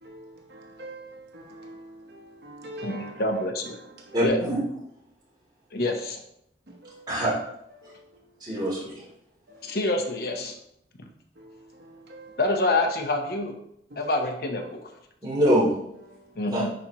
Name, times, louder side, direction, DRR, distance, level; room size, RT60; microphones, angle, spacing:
voice 1, 0.0-3.1 4.1-4.2 6.7-7.0 7.8-8.0 9.5-9.6 11.4-12.4 13.9-14.0 16.1-16.2, right 1 dB, 60° right, 1.0 m, -44 dB
voice 2, 2.8-3.8 4.2-4.4 5.7-6.2 9.6-10.5 12.4-13.6 14.0-14.9 16.4-16.7, left 2 dB, 55° left, 0.8 m, -26 dB
voice 3, 4.1-4.6 7.1-7.3 8.4-9.0 15.2-15.7 16.4-16.6, equal, 25° right, 2.6 m, -24 dB
10.5 x 4.3 x 2.9 m
head